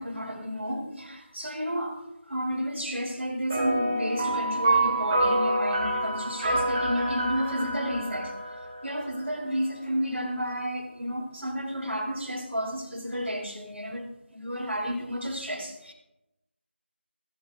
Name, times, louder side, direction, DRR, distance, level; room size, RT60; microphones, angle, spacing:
voice 1, 0.0-2.0 2.3-8.3 8.8-14.0 14.3-15.9, equal, 85° right, 0 dB, 3.6 m, -31 dB
sound 1, 3.5-9.3, right 2 dB, 20° right, 2.2 m, -27 dB
17.5 x 8.0 x 2.6 m, 0.93 s
figure-of-eight pair, 170°, 6 cm